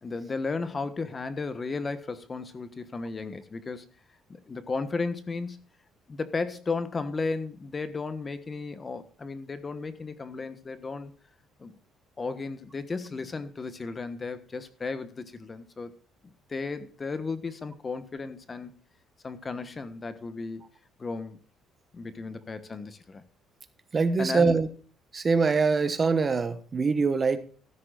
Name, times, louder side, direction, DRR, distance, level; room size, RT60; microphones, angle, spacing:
voice 1, 0.0-3.9 4.3-5.6 6.1-11.1 11.6-11.7 12.2-15.9 16.2-18.8 19.2-20.6 21.0-21.4 21.9-23.2 24.2-24.6, left 4 dB, 25° left, 1.2 m, -34 dB
voice 2, 23.9-24.7 25.1-27.4, right 4 dB, 30° right, 1.2 m, -23 dB
14.5 x 13.0 x 2.4 m
cardioid pair, 125°, 0 cm